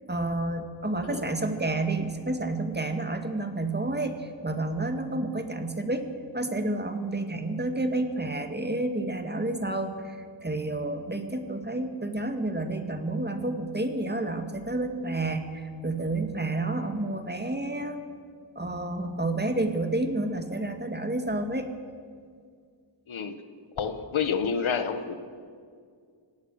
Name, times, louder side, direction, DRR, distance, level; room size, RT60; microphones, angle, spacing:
voice 1, 0.1-6.1 6.3-18.0 18.6-21.7, right 2 dB, 20° right, 6 dB, 2.0 m, -30 dB
voice 2, 23.8-25.1, left 6 dB, 90° left, 9 dB, 1.5 m, -29 dB
25.0 x 18.0 x 6.5 m, 2.1 s
wide cardioid pair, 85°, 46 cm